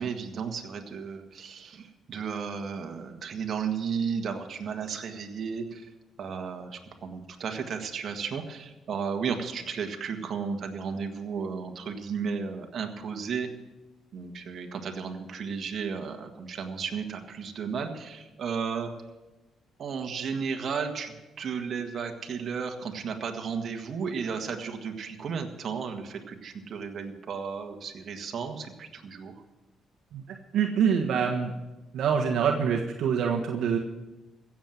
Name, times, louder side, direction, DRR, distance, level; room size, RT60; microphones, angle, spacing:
voice 1, 0.0-5.9 6.2-13.5 14.1-18.9 19.8-29.3, right 6 dB, 55° right, 4 dB, 1.7 m, -34 dB
voice 2, 30.1-31.5 31.9-33.8, right 7 dB, 75° right, 1 dB, 1.3 m, -25 dB
16.0 x 7.5 x 7.6 m, 1.1 s
cardioid pair, 90°, 0 cm